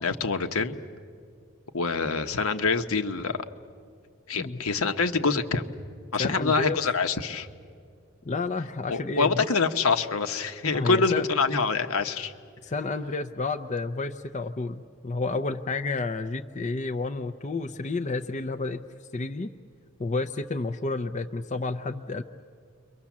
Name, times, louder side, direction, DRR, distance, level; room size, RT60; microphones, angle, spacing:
voice 1, 0.0-0.8 1.7-3.4 4.3-5.7 6.1-7.5 8.9-12.3, left 4 dB, 70° left, 7 dB, 1.2 m, -25 dB
voice 2, 4.3-4.6 6.2-6.8 8.2-9.5 10.7-11.3 12.6-18.8 19.1-19.5 20.0-22.2, left 3 dB, 30° left, 6 dB, 0.5 m, -30 dB
29.5 x 23.5 x 7.3 m, 2.2 s
head